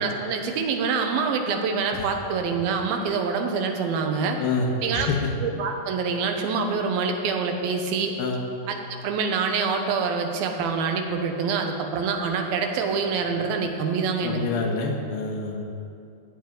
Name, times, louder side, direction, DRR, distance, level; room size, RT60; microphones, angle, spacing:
voice 1, 0.0-4.4 4.8-5.1 5.4-8.1 8.7-14.4, right 5 dB, 90° right, 4 dB, 2.9 m, -26 dB
voice 2, 4.4-4.7 4.9-5.3 8.2-8.4 14.2-15.8, left 4 dB, 85° left, 0 dB, 3.2 m, -27 dB
15.0 x 5.2 x 9.4 m, 2.5 s
omnidirectional pair, 4.1 m